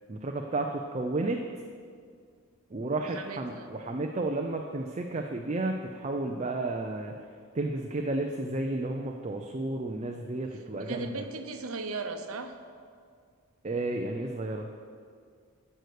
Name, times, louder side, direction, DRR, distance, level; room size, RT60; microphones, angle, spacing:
voice 1, 0.1-1.4 2.7-7.1 7.5-11.2 13.6-14.7, right 2 dB, 30° right, 2 dB, 0.5 m, -32 dB
voice 2, 3.0-3.7 10.8-12.5, right 3 dB, 75° right, 7 dB, 0.9 m, -37 dB
11.0 x 6.6 x 6.5 m, 2.1 s
head